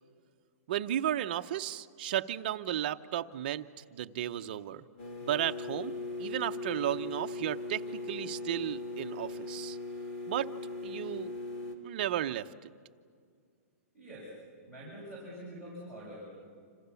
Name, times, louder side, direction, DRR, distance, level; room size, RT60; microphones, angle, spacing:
voice 1, 0.7-4.8 5.2-9.8 10.3-10.5 10.8-11.3 11.8-12.5, right 11 dB, 35° right, 8 dB, 0.7 m, -34 dB
sound 1, 5.0-11.7, left 2 dB, 35° left, 3.2 m, -39 dB
voice 2, 13.9-14.3 14.7-16.5, equal, 10° left, -7 dB, 6.6 m, -45 dB
28.0 x 27.0 x 7.0 m, 2.1 s
hypercardioid pair, 180°, 8 cm